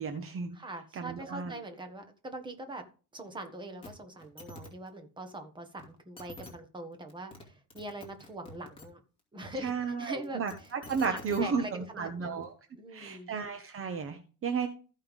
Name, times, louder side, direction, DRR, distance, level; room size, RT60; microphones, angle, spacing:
voice 1, 0.0-0.6 1.0-1.5 9.6-12.5 12.9-14.7, right 5 dB, 35° right, 7 dB, 1.0 m, -33 dB
voice 2, 0.5-2.8 3.1-9.0 9.3-12.4 12.8-13.3, right 1 dB, 10° right, 5 dB, 1.4 m, -43 dB
sound 1, 3.8-3.9 4.2-4.7 5.8-5.9 6.2-6.5 7.1-7.4 7.7-8.9 10.2-11.4 12.4-12.5, left 2 dB, 15° left, 2.4 m, -47 dB
15.0 x 5.6 x 3.6 m, 0.36 s
cardioid pair, 160°, 37 cm